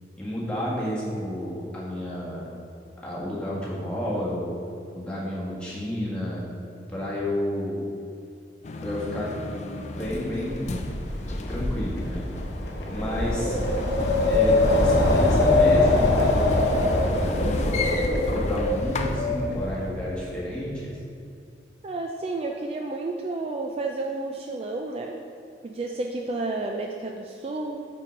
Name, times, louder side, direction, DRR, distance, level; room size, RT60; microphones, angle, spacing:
voice 1, 0.2-2.5 3.0-4.5 4.9-6.4 6.9-7.8 8.8-9.3 10.0-10.8 11.3-12.3 12.9-13.6 14.3-16.9 17.2-17.6 18.3-21.0, left 1 dB, 5° left, -7 dB, 1.6 m, -31 dB
sound 1, 8.6-19.2, left 3 dB, 40° left, 0.4 m, -36 dB
Wind, 10.1-20.2, left 2 dB, 70° left, 0.9 m, -23 dB
voice 2, 21.8-25.2 25.6-27.8, right 2 dB, 35° right, 1 dB, 0.3 m, -31 dB
5.5 x 5.3 x 5.2 m, 2.5 s
head